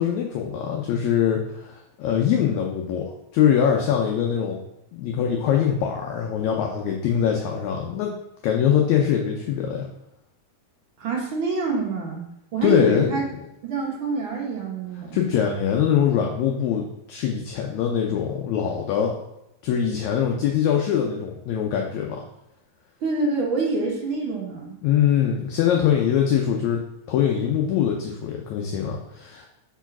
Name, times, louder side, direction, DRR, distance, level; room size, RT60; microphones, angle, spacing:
voice 1, 0.0-4.6 4.9-8.1 8.4-9.9 12.6-13.1 15.1-19.1 19.6-22.2 24.8-26.8 27.1-29.5, left 8 dB, 80° left, 1 dB, 1.7 m, -23 dB
voice 2, 11.0-12.3 12.5-13.3 13.6-15.2 23.0-24.8, right 4 dB, 55° right, -2 dB, 1.4 m, -26 dB
5.0 x 4.6 x 5.8 m, 0.84 s
omnidirectional pair, 4.0 m